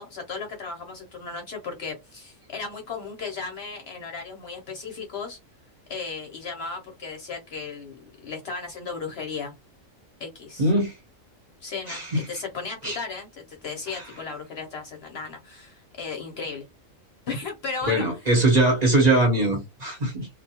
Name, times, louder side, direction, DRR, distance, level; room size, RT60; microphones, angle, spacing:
voice 1, 0.0-5.4 5.9-9.5 10.2-10.7 11.6-16.6 17.3-18.0, left 4 dB, 60° left, 0.8 m, -35 dB
voice 2, 10.6-10.9 11.9-12.2 12.8-13.0 17.9-20.3, right 2 dB, 35° right, 1.0 m, -21 dB
2.5 x 2.2 x 2.7 m
omnidirectional pair, 1.4 m